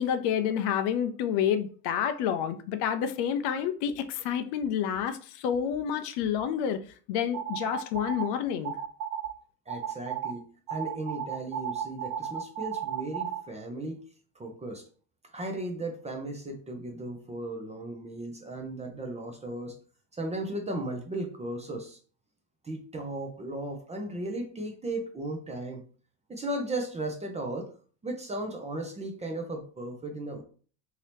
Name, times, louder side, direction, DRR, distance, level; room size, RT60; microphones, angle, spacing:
voice 1, 0.0-6.8 7.1-8.7, left 8 dB, 60° left, 0.5 m, -29 dB
sound 1, 7.3-8.3 8.6-9.3 9.7-10.3 10.7-13.4, right 9 dB, 65° right, 0.7 m, -34 dB
voice 2, 9.7-14.0 14.4-14.8 15.3-19.8 20.1-22.0 22.6-25.8 26.3-27.7 28.0-30.4, right 1 dB, 15° right, 0.5 m, -36 dB
2.9 x 2.8 x 3.3 m
supercardioid pair, 105°, 47 cm